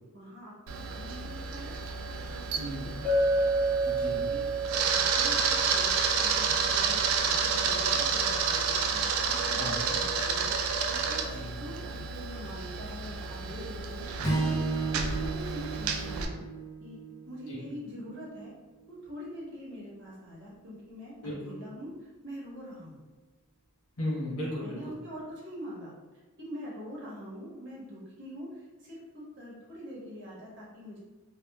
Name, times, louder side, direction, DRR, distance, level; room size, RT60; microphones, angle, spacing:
voice 1, 0.1-3.3 4.2-4.4 4.8-11.2 11.5-16.4 16.8-17.0 17.2-18.5 19.0-23.0 24.6-25.9 26.4-31.0, equal, 60° right, -6 dB, 1.0 m, -44 dB
Camera, 0.7-16.3, right 5 dB, 80° right, 0.3 m, -30 dB
voice 2, 2.6-2.9 3.8-4.3 9.6-9.8 11.3-11.5 17.5-17.7 21.2-21.4 24.0-24.8, left 1 dB, 80° left, -5 dB, 1.1 m, -35 dB
Chink clink, 3.0-7.1, right 2 dB, 30° right, 0.9 m, -30 dB
Strum, 14.2-18.6, right 3 dB, 15° left, 0.4 m, -34 dB
2.9 x 2.2 x 2.3 m, 1.2 s
head